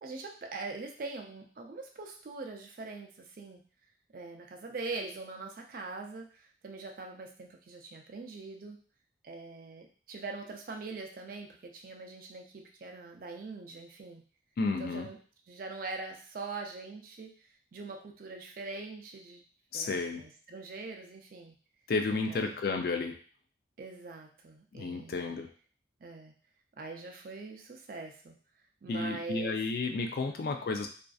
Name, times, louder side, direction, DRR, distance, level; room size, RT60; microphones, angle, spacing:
voice 1, 0.0-3.6 4.1-8.8 9.2-14.2 14.8-15.2 15.5-19.4 19.7-21.5 22.3-22.6 23.8-25.2 26.0-26.3 26.8-28.3 28.8-29.6 30.0-30.1 30.3-30.4, right 3 dB, 50° right, 2 dB, 0.4 m, -43 dB
voice 2, 14.6-15.1 19.7-20.2 21.9-23.2 24.7-25.5 28.9-30.9, left 3 dB, 55° left, 4 dB, 0.3 m, -32 dB
2.5 x 2.4 x 2.3 m, 0.41 s
head